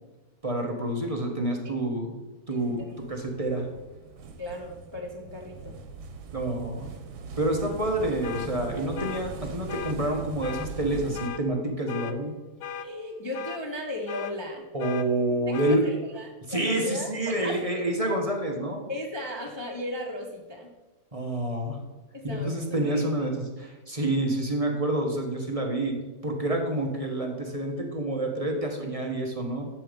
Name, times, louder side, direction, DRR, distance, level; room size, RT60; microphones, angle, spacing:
voice 1, 0.4-2.1 2.5-3.7 6.3-6.9 7.4-12.3 14.7-15.8 16.5-18.9 21.1-21.8 22.2-26.0 26.2-29.7, right 1 dB, 20° right, 1 dB, 1.1 m, -28 dB
voice 2, 2.5-2.9 4.4-5.7 12.8-14.6 15.5-17.8 18.9-20.7 22.1-22.5 22.8-23.0, left 1 dB, 40° left, 0 dB, 0.4 m, -36 dB
sound 1, 2.6-11.3, right 5 dB, 85° right, 1.8 m, -41 dB
sound 2, 8.2-8.5 9.0-9.2 9.7-10.0 10.4-10.7 11.1-11.4 11.9-12.1 12.6-12.9 13.3-13.6 14.1-14.3 14.8-15.1 15.5-15.8, left 8 dB, 65° left, 0.9 m, -37 dB
10.5 x 6.9 x 5.2 m, 1.2 s
omnidirectional pair, 2.1 m